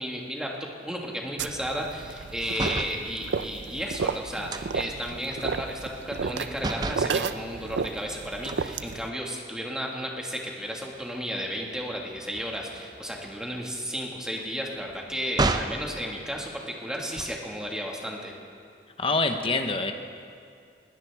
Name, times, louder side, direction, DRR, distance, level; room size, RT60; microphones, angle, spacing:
voice 1, 0.0-18.4, equal, 5° right, -1 dB, 1.8 m, -33 dB
sound 1, 1.4-9.1, right 5 dB, 85° right, 0.5 m, -33 dB
sound 2, 2.5-3.0 4.5-6.3 6.6-7.1 8.4-9.5 10.0-10.2 10.5-15.8 16.9-17.6, right 2 dB, 25° right, 0.5 m, -34 dB
voice 2, 19.0-19.9, left 3 dB, 30° left, 6 dB, 0.9 m, -25 dB
20.5 x 17.0 x 3.5 m, 2.4 s
head